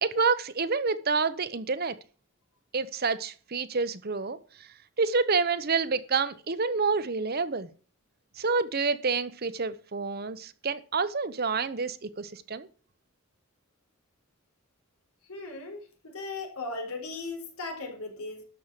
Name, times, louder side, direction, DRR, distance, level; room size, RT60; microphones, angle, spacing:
voice 1, 0.0-2.0 2.7-4.4 5.0-7.7 8.4-12.7, right 4 dB, 45° right, 13 dB, 0.9 m, -28 dB
voice 2, 15.3-18.4, left 3 dB, 90° left, 4 dB, 4.1 m, -37 dB
13.0 x 5.6 x 7.5 m, 0.40 s
head